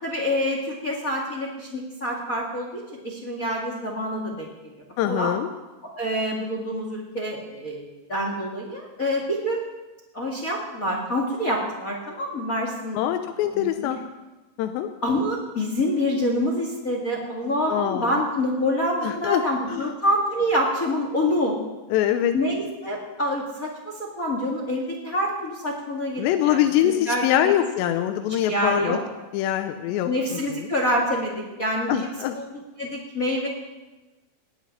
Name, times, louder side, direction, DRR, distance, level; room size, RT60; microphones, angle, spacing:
voice 1, 0.0-4.7 5.0-5.3 5.8-9.6 10.1-13.0 13.8-13.9 15.0-21.6 22.3-27.5 28.5-29.0 30.0-32.1 32.3-32.4 32.8-33.5, equal, 30° left, 0 dB, 1.7 m, -26 dB
voice 2, 5.0-5.5 12.9-14.0 14.6-14.9 17.7-18.2 19.0-19.4 19.7-19.9 21.9-22.3 26.2-29.0 29.3-30.7 31.9-32.4, left 11 dB, 85° left, 7 dB, 3.0 m, -24 dB
18.0 x 7.5 x 9.8 m, 1.1 s
omnidirectional pair, 4.9 m